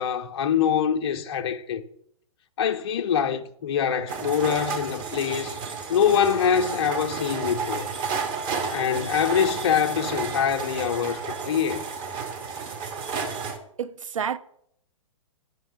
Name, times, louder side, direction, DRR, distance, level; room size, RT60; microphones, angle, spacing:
voice 1, 0.0-1.8 2.6-5.6 5.9-7.9 8.7-11.9, left 8 dB, 50° left, 0.5 m, -24 dB
sound 1, 4.1-13.6, right 5 dB, 25° right, 0.8 m, -32 dB
voice 2, 13.8-14.4, right 7 dB, 75° right, 0.4 m, -29 dB
5.7 x 5.6 x 3.7 m
figure-of-eight pair, 115°, 17 cm